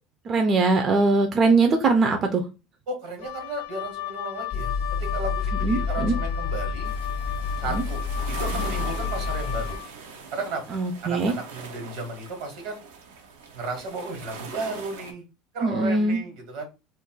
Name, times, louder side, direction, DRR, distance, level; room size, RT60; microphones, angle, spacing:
voice 1, 0.3-2.5 5.6-6.1 7.7-7.8 10.7-11.3 15.6-16.2, right 3 dB, 40° right, 4 dB, 0.5 m, -21 dB
voice 2, 2.9-4.7 5.1-6.9 7.6-8.0 8.4-9.8 10.3-12.8 13.5-15.2 15.5-16.7, right 2 dB, 75° right, 4 dB, 1.4 m, -34 dB
Wind instrument woodwind instrument, 3.2-9.9, left 14 dB, 80° left, 0.4 m, -35 dB
sound 1, 4.5-9.8, left 4 dB, 30° left, 0.5 m, -29 dB
sound 2, 6.8-15.1, right 5 dB, 90° right, 0.6 m, -41 dB
2.5 x 2.2 x 3.7 m, 0.28 s
supercardioid pair, 100°, 0 cm